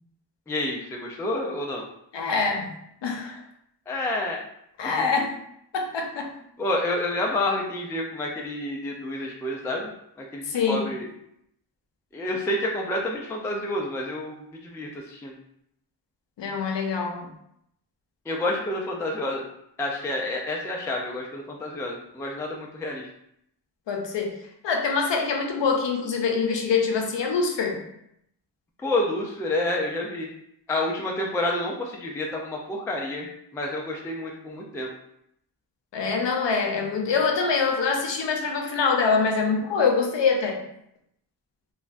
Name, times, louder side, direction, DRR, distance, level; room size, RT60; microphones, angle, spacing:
voice 1, 0.5-1.8 3.9-4.4 4.8-5.1 6.6-9.9 10.2-11.1 12.1-15.3 18.3-19.5 19.8-23.1 28.8-30.3 30.7-33.3 33.5-34.9, left 1 dB, 5° left, -1 dB, 0.3 m, -29 dB
voice 2, 2.1-2.7 3.0-3.4 4.8-5.3 5.7-6.3 10.5-10.9 16.4-17.3 23.9-24.4 24.6-27.8 35.9-40.6, left 5 dB, 90° left, 2 dB, 0.6 m, -24 dB
3.2 x 2.1 x 2.5 m, 0.75 s
wide cardioid pair, 80°, 42 cm